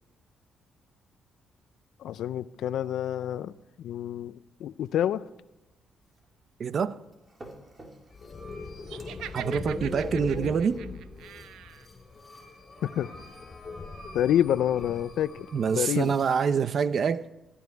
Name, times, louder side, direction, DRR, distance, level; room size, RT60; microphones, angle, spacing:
voice 1, 2.0-3.5 3.8-5.2 10.2-10.3 12.8-13.1 14.1-15.5 15.7-16.2, left 11 dB, 75° left, 0.5 m, -28 dB
sound 1, 5.1-10.8, right 1 dB, 25° right, 3.2 m, -54 dB
voice 2, 6.6-7.0 9.3-10.8 15.5-17.3, right 6 dB, 50° right, 0.7 m, -26 dB
sound 2, 8.1-16.3, left 3 dB, 30° left, 4.3 m, -41 dB
Laughter, 8.8-11.9, right 11 dB, 85° right, 0.7 m, -43 dB
16.5 x 14.5 x 4.7 m
cardioid pair, 90°, 0 cm